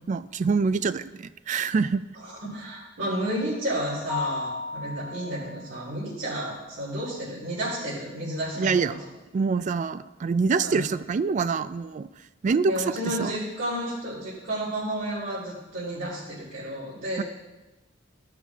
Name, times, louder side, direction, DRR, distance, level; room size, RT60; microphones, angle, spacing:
voice 1, 0.1-2.0 8.6-8.9 9.3-12.1 12.4-13.3 17.2-17.3, right 5 dB, 40° right, 14 dB, 0.3 m, -25 dB
voice 2, 2.2-8.7 10.6-10.9 12.6-17.2, right 1 dB, 85° right, -12 dB, 3.3 m, -31 dB
Mallet percussion, 4.1-5.9, left 4 dB, 5° right, 1.2 m, -34 dB
14.0 x 5.9 x 3.5 m, 1.1 s
head